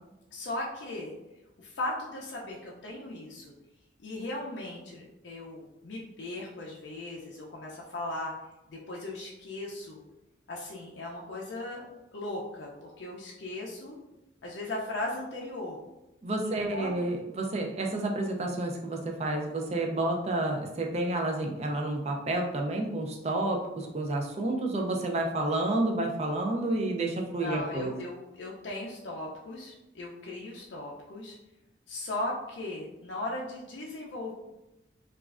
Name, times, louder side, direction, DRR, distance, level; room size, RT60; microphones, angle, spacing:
voice 1, 0.3-1.1 1.6-3.5 4.0-8.3 8.7-10.0 10.5-14.0 14.4-15.8 16.4-17.0 27.4-31.4 31.9-34.3, left 2 dB, 65° left, -3 dB, 0.4 m, -37 dB
voice 2, 16.2-27.9, right 2 dB, 35° right, 2 dB, 0.4 m, -30 dB
3.0 x 2.4 x 2.4 m, 0.94 s
head